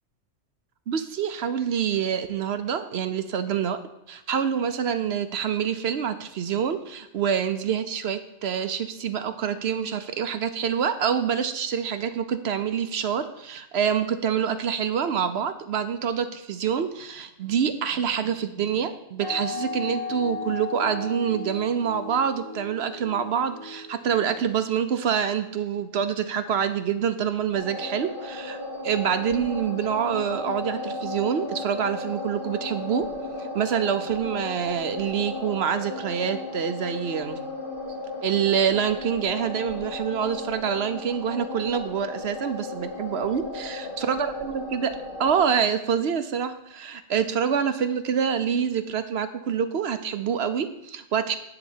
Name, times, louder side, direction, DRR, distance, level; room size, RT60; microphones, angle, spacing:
voice 1, 0.9-3.8 4.1-28.6 28.8-33.1 33.4-37.4 38.2-44.9 45.2-51.4, right 8 dB, 60° right, 10 dB, 0.8 m, -26 dB
sound 1, 19.2-24.6, left 4 dB, 80° left, 3.5 m, -36 dB
sound 2, 27.5-45.5, left 2 dB, 45° left, 1.4 m, -35 dB
10.5 x 4.0 x 7.2 m, 0.86 s
omnidirectional pair, 1.3 m